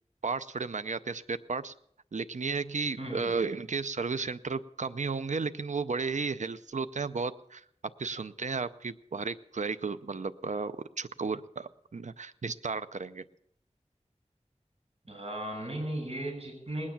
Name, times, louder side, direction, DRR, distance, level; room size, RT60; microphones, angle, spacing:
voice 1, 0.2-1.7 2.1-7.6 8.0-13.2, right 4 dB, 80° right, 13 dB, 0.5 m, -33 dB
voice 2, 3.0-3.3 15.1-16.9, right 1 dB, 55° right, 2 dB, 6.5 m, -36 dB
20.0 x 9.6 x 7.2 m, 0.70 s
wide cardioid pair, 45°, 12 cm